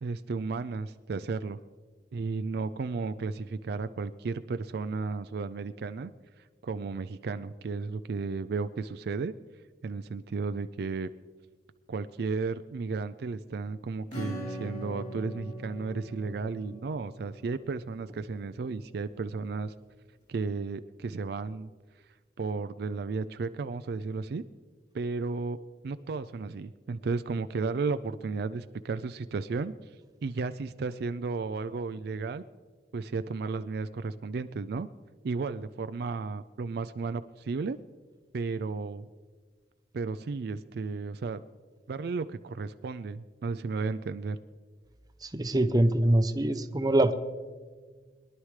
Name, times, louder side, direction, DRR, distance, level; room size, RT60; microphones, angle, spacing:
voice 1, 0.0-1.6 2.1-6.1 6.6-9.3 9.8-11.1 11.9-19.7 20.3-21.7 22.4-24.4 24.9-25.6 25.8-29.7 30.2-32.4 32.9-34.9 35.2-37.8 38.3-39.1 39.9-41.4 41.9-44.4, right 4 dB, 65° right, 11 dB, 0.4 m, -33 dB
Acoustic guitar / Strum, 14.1-18.4, equal, 45° left, 4.3 m, -41 dB
voice 2, 45.2-47.1, right 1 dB, 20° right, 8 dB, 0.7 m, -24 dB
22.0 x 11.0 x 3.2 m, 1.5 s
head